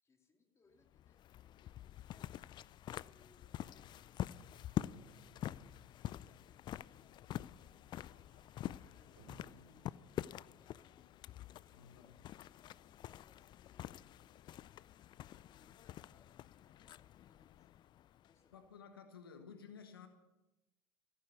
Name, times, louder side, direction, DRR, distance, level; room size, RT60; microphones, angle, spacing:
voice 1, 0.0-4.6 5.0-8.2 8.7-11.0 11.5-14.6 15.2-17.9 18.3-18.6, left 4 dB, 25° left, 3 dB, 2.6 m, -73 dB
sound 1, 0.9-18.5, left 12 dB, 40° left, 0.4 m, -47 dB
sound 2, 3.2-6.4 7.5-10.8, right 3 dB, 65° right, 3.0 m, -66 dB
voice 2, 11.7-12.2 18.5-20.1, left 6 dB, 90° left, 7 dB, 1.3 m, -54 dB
15.5 x 9.6 x 6.8 m, 0.99 s
hypercardioid pair, 80°, 12 cm